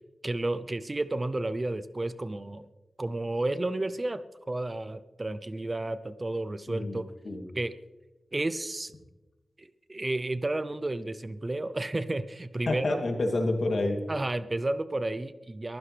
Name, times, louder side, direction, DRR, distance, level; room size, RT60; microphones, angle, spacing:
voice 1, 0.2-2.7 3.0-7.1 7.5-7.7 8.3-8.9 9.6-13.0 14.1-15.8, right 2 dB, 25° right, 13 dB, 0.6 m, -32 dB
voice 2, 6.7-7.4 12.7-14.0, left 2 dB, 60° left, 1 dB, 2.8 m, -29 dB
22.5 x 15.5 x 3.4 m, 1.1 s
wide cardioid pair, 130°, 0 cm